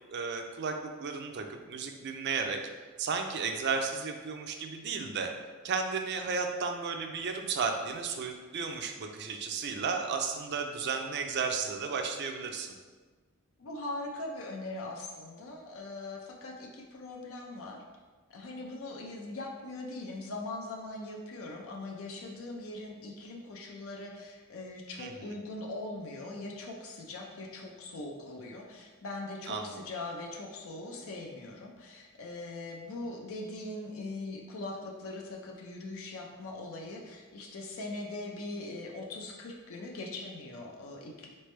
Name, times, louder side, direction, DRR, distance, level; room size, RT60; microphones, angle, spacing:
voice 1, 0.1-2.6 3.0-5.3 5.6-12.7 25.0-25.1 29.5-29.6, right 5 dB, 55° right, 5 dB, 0.4 m, -33 dB
voice 2, 13.6-17.8 18.3-41.3, left 2 dB, 70° left, 0 dB, 0.5 m, -41 dB
4.1 x 3.3 x 3.2 m, 1.4 s
head